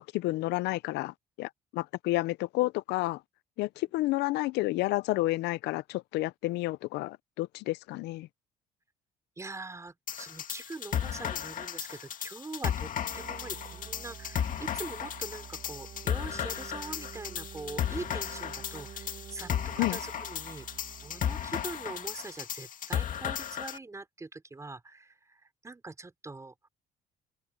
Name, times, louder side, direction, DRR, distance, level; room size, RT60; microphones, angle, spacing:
voice 1, 0.0-3.2 3.6-8.3 19.8-20.0, left 18 dB, 85° left, 0.5 m, -30 dB
voice 2, 9.4-20.7 21.0-26.5, right 3 dB, 15° right, 5.1 m, -43 dB
sound 1, 10.1-23.8, left 9 dB, 50° left, 2.3 m, -35 dB
sound 2, 12.8-22.4, right 8 dB, 45° right, 1.7 m, -48 dB
cardioid pair, 110°, 17 cm